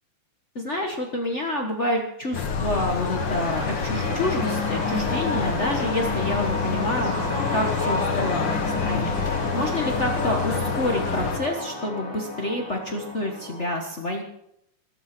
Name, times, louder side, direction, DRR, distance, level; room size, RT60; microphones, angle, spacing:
voice 1, 0.5-7.1 7.5-9.1 9.5-14.2, left 1 dB, 70° left, 2 dB, 0.6 m, -28 dB
sound 1, 2.3-11.4, left 5 dB, 50° left, 1.5 m, -27 dB
sound 2, 2.6-13.7, left 2 dB, ahead, 4.7 m, -32 dB
13.5 x 13.0 x 6.1 m, 0.77 s
omnidirectional pair, 3.8 m